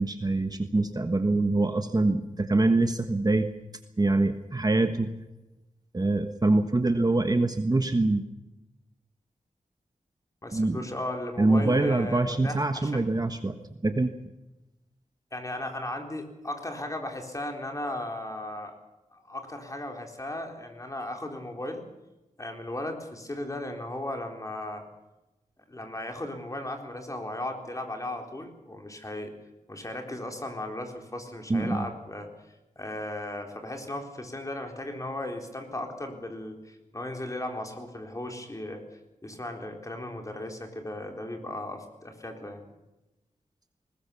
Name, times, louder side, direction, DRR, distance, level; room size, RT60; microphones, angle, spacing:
voice 1, 0.0-3.5 4.0-5.1 5.9-8.2 10.5-10.8 11.4-13.5 13.8-14.1 31.5-31.8, right 2 dB, 30° right, 7 dB, 1.4 m, -24 dB
voice 2, 10.4-13.0 15.3-18.8 19.1-21.8 22.4-24.9 25.7-29.3 29.7-32.3 32.8-38.8 39.2-42.6, left 1 dB, 25° left, 3 dB, 4.1 m, -36 dB
20.5 x 20.0 x 7.1 m, 1.0 s
wide cardioid pair, 105°, 14 cm